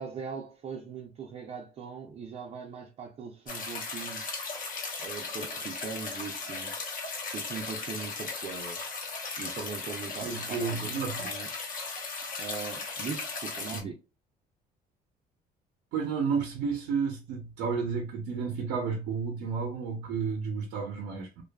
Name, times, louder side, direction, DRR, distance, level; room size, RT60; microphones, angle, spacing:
voice 1, 0.0-4.4 5.0-6.8 7.3-8.9 9.4-10.9 11.2-11.5 12.4-14.0, right 5 dB, 40° right, 0.5 m, -40 dB
sound 1, 3.5-13.8, left 4 dB, 55° left, 0.8 m, -37 dB
voice 2, 10.2-11.3 13.7-13.9 15.9-21.4, right 5 dB, 90° right, 0.6 m, -32 dB
2.5 x 2.3 x 2.2 m
cardioid pair, 110°, 17 cm